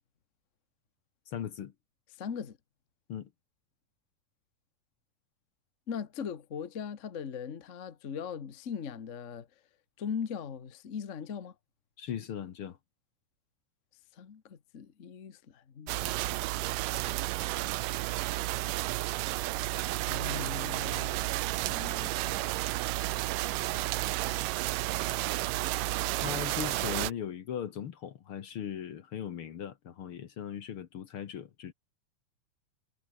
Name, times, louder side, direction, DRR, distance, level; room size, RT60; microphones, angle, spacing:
voice 1, 1.3-1.7 3.1-3.3 12.0-12.8 26.1-31.7, left 9 dB, 55° left, 1.6 m, -38 dB
voice 2, 2.2-2.6 5.9-9.5 10.0-11.5 14.1-16.2 20.1-21.2 21.6-22.1, left 7 dB, 75° left, 0.7 m, -39 dB
sound 1, 15.9-27.1, right 18 dB, 85° right, 2.3 m, -32 dB
omnidirectional pair, 3.8 m